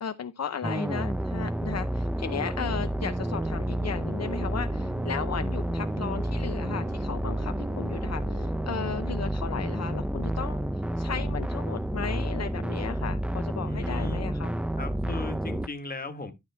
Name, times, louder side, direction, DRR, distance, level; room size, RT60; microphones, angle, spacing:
voice 1, 0.0-10.6 11.0-14.6, left 7 dB, 60° left, 0.7 m, -35 dB
sound 1, 0.6-15.7, right 1 dB, 5° right, 0.5 m, -30 dB
sound 2, 3.0-9.0, right 5 dB, 45° right, 1.0 m, -46 dB
voice 2, 13.7-14.2 14.8-16.3, left 3 dB, 30° left, 1.4 m, -37 dB
12.0 x 6.0 x 3.3 m
wide cardioid pair, 165°, 30 cm